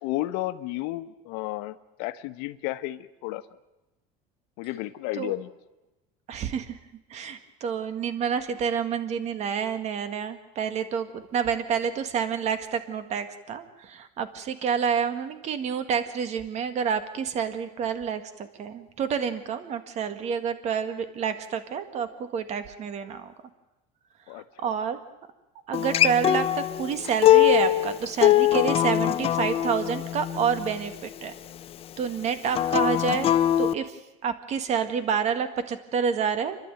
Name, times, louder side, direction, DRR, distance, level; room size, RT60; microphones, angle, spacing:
voice 1, 0.0-3.4 4.6-5.5 24.3-24.8, left 16 dB, 70° left, 11 dB, 1.2 m, -33 dB
voice 2, 6.3-6.8 7.1-23.3 24.3-25.0 25.7-31.3 32.0-33.3 33.6-36.6, right 7 dB, 45° right, 10 dB, 1.9 m, -28 dB
Acoustic guitar, 25.7-30.9 32.5-33.7, left 12 dB, 35° left, 0.7 m, -22 dB
29.0 x 12.0 x 9.1 m, 1.0 s
cardioid pair, 135°, 17 cm